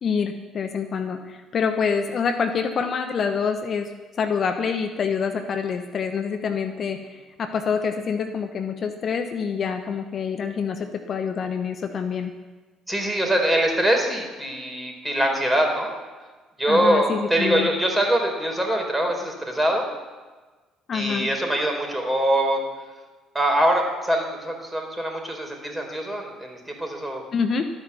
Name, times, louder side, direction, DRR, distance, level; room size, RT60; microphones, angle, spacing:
voice 1, 0.0-12.3 16.7-17.7 20.9-21.3 27.3-27.7, left 6 dB, 50° left, 7 dB, 1.1 m, -26 dB
voice 2, 12.9-15.9 16.6-19.8 20.9-22.6 23.3-27.2, right 1 dB, 10° right, 2 dB, 4.5 m, -23 dB
13.0 x 10.0 x 7.1 m, 1.3 s
hypercardioid pair, 50°, 0 cm